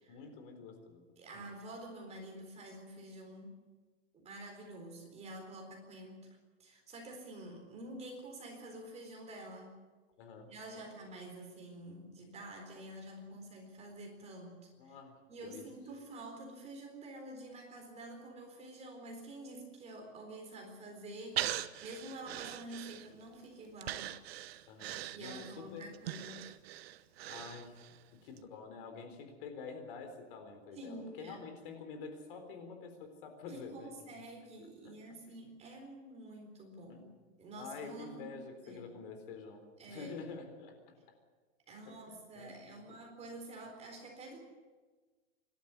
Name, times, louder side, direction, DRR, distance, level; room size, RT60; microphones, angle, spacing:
voice 1, 0.1-1.0 1.3-1.5 10.2-10.8 14.8-15.1 15.4-15.7 24.7-25.9 27.3-27.8 28.1-33.9 34.8-34.9 35.3-35.4 36.9-37.0 37.6-40.8 41.9-42.5 42.9-43.0, left 5 dB, 45° left, 6 dB, 4.0 m, -48 dB
voice 2, 1.2-3.5 4.1-6.3 6.6-9.8 10.5-15.0 15.3-24.2 25.1-26.5 30.8-31.4 33.5-37.1 37.4-38.4 38.6-38.8 39.8-40.2 41.7-44.4, right 1 dB, 15° right, 2 dB, 4.1 m, -48 dB
Breathing, 21.4-23.3 23.8-28.0 28.4-28.5, right 13 dB, 55° right, 1.1 m, -41 dB
26.0 x 12.5 x 9.7 m, 1.4 s
hypercardioid pair, 155°, 38 cm